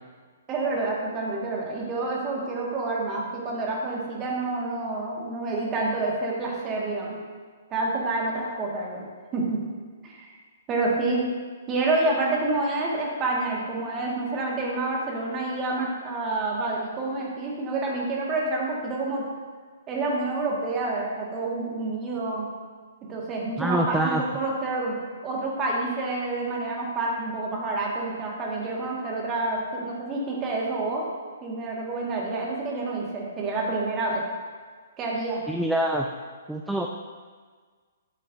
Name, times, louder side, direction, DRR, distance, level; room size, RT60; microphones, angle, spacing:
voice 1, 0.5-7.2 7.7-9.0 9.3-9.6 10.0-10.3 10.7-11.3 11.7-19.2 19.9-22.5 23.1-25.0 25.2-31.0 31.4-34.2 35.0-35.4, right 2 dB, 20° right, -3 dB, 1.8 m, -28 dB
voice 2, 23.6-24.2 35.5-36.1 36.5-36.9, right 1 dB, ahead, 1 dB, 0.4 m, -25 dB
10.0 x 7.5 x 2.7 m, 1.5 s
figure-of-eight pair, 120°, 0 cm